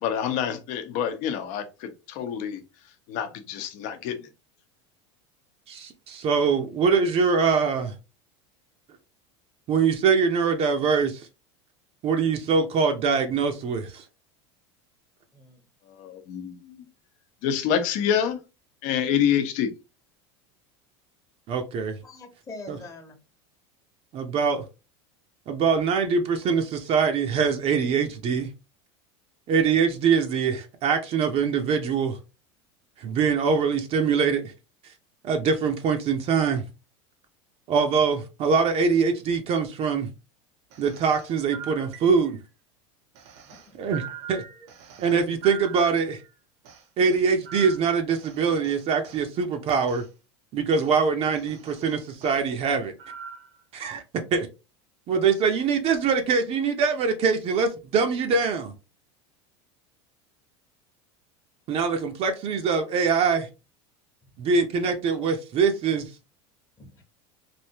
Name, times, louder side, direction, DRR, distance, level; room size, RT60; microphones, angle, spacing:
voice 1, 0.0-2.6 3.1-4.3 15.9-16.8 17.4-18.4 18.8-19.7, left 8 dB, 60° left, 0.7 m, -27 dB
voice 2, 5.7-7.9 9.7-11.3 12.0-14.0 21.5-22.0 22.7-22.8 24.1-24.6 25.5-28.5 29.5-32.2 33.0-34.5 35.2-36.7 37.7-40.1 40.8-42.4 43.8-44.0 44.3-44.4 45.0-46.2 47.0-50.0 50.5-52.9 53.7-54.0 54.3-54.5 55.1-58.7 61.7-63.5 64.4-66.1, right 5 dB, 45° right, 0.6 m, -23 dB
voice 3, 15.3-15.6 22.0-23.2 43.4-43.8 44.5-44.7 66.8-67.0, left 2 dB, 20° left, 1.0 m, -44 dB
sound 1, 40.7-42.5 43.1-46.3 46.6-49.3 49.9-50.1 50.7-50.9 51.3-52.4 53.0-53.6, right 7 dB, 70° right, 0.9 m, -42 dB
3.3 x 2.6 x 2.8 m
supercardioid pair, 105°, 15 cm